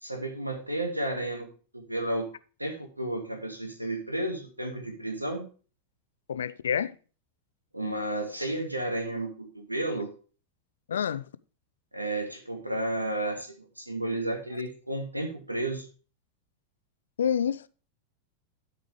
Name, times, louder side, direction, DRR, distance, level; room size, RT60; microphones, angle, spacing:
voice 1, 0.0-2.3 2.6-5.4 7.7-10.1 11.9-15.9, right 1 dB, 85° right, 2.1 m, -32 dB
voice 2, 6.3-7.0 10.9-11.2 17.2-17.7, left 8 dB, 65° left, 0.5 m, -28 dB
12.0 x 4.8 x 5.0 m
figure-of-eight pair, 90°, 0 cm